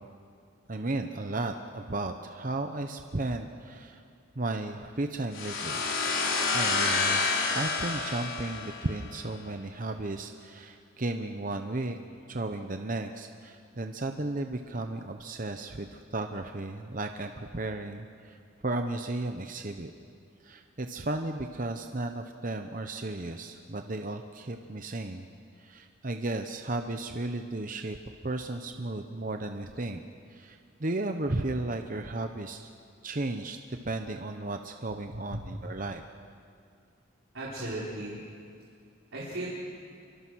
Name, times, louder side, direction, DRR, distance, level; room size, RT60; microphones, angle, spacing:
voice 1, 0.7-4.0 4.4-5.8 6.5-12.0 12.3-18.4 18.6-19.9 20.4-25.3 25.6-28.0 28.2-30.0 30.3-32.7 33.0-36.0, right 2 dB, 40° right, 6 dB, 0.9 m, -34 dB
sound 1, 5.3-9.1, left 4 dB, 75° left, 3.9 m, -28 dB
voice 2, 35.1-35.4 37.3-38.2 39.1-39.5, right 1 dB, 75° right, -7 dB, 4.2 m, -36 dB
27.0 x 24.5 x 6.3 m, 2.3 s
head